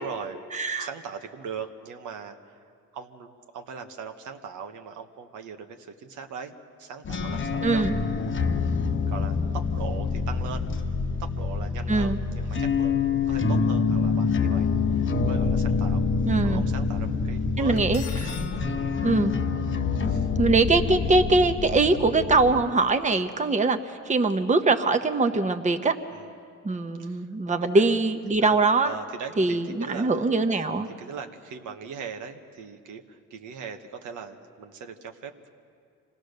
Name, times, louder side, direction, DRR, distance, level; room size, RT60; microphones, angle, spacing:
voice 1, 0.0-0.5 0.8-2.6 2.9-6.5 6.8-7.8 9.1-10.7 11.2-16.0 16.4-17.8 18.7-18.9 20.0-20.3 23.4-23.6 26.1-26.3 27.0-27.3 27.7-27.9 28.4-28.6 28.8-30.3 30.8-35.5, right 6 dB, 80° right, 5 dB, 1.3 m, -40 dB
voice 2, 0.5-0.9 7.6-8.0 11.9-12.2 16.2-16.6 17.6-18.0 19.0-19.3 20.4-26.0 26.6-28.9 29.4-30.9, right 3 dB, 25° right, 7 dB, 1.0 m, -22 dB
sound 1, 7.0-22.6, left 5 dB, 40° left, 1.1 m, -26 dB
Cutlery silverware, 17.8-18.5, left 7 dB, 85° left, 1.3 m, -41 dB
25.5 x 18.0 x 6.6 m, 2.3 s
cardioid pair, 90°, 30 cm